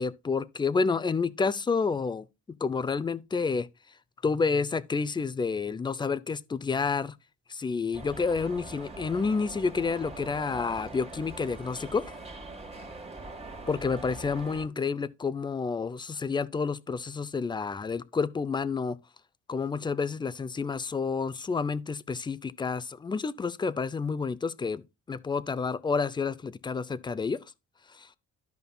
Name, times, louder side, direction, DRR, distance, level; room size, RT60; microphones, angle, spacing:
voice 1, 0.0-2.3 2.6-3.7 4.2-7.1 7.5-12.1 13.7-19.0 19.5-24.8 25.1-27.4 27.9-28.1, left 5 dB, 15° left, 0.4 m, -29 dB
sound 1, 7.9-14.7, right 2 dB, 20° right, 1.5 m, -43 dB
13.0 x 5.3 x 2.3 m
cardioid pair, 90°, 30 cm